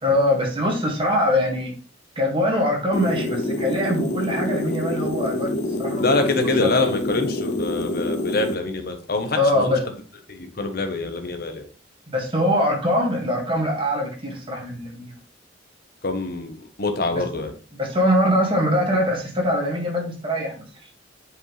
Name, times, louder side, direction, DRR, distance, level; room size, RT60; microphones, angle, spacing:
voice 1, 0.0-1.7 2.2-5.5 5.8-6.3 6.6-6.9 9.4-9.8 12.1-15.1 17.8-20.6, left 1 dB, 30° right, -1 dB, 2.2 m, -22 dB
sound 1, 2.9-8.6, left 1 dB, 40° left, 0.6 m, -26 dB
voice 2, 6.0-9.9 10.3-11.7 16.0-17.5, left 3 dB, 55° left, 6 dB, 1.2 m, -25 dB
7.5 x 5.4 x 3.4 m, 0.37 s
head